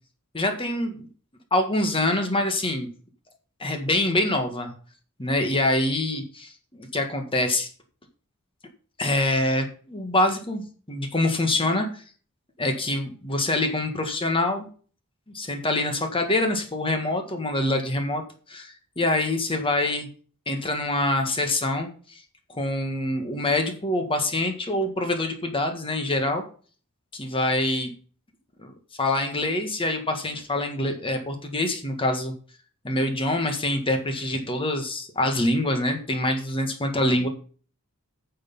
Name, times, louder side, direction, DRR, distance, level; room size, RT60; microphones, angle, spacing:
voice 1, 0.3-1.1 1.5-2.9 3.6-4.7 5.2-7.7 9.0-12.0 12.6-14.7 15.3-18.2 18.5-20.1 20.5-22.2 22.5-26.4 27.1-27.9 28.6-28.7 29.0-32.3 32.8-37.3, left 1 dB, 25° left, 5 dB, 1.7 m, -25 dB
9.9 x 6.7 x 5.5 m, 0.41 s
head